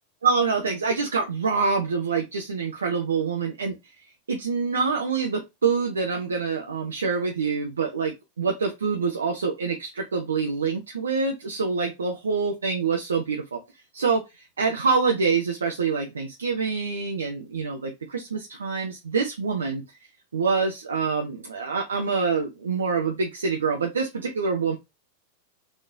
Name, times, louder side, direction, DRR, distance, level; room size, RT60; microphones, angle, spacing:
voice 1, 0.2-3.7 4.3-13.6 13.9-19.8 20.3-24.8, right 5 dB, 70° right, 2 dB, 0.6 m, -26 dB
4.2 x 3.0 x 2.6 m, 0.22 s
figure-of-eight pair, 90°, 0 cm